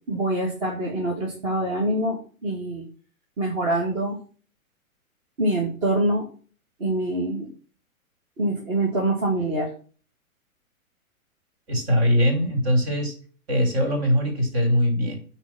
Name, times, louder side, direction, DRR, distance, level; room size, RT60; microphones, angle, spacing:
voice 1, 0.1-2.8 3.4-4.2 5.4-6.2 6.8-7.5 8.4-9.7, right 1 dB, 30° right, -2 dB, 2.5 m, -25 dB
voice 2, 11.7-13.1 13.5-15.2, equal, 45° right, 2 dB, 4.5 m, -21 dB
9.6 x 4.6 x 6.3 m, 0.39 s
figure-of-eight pair, 115°, 43 cm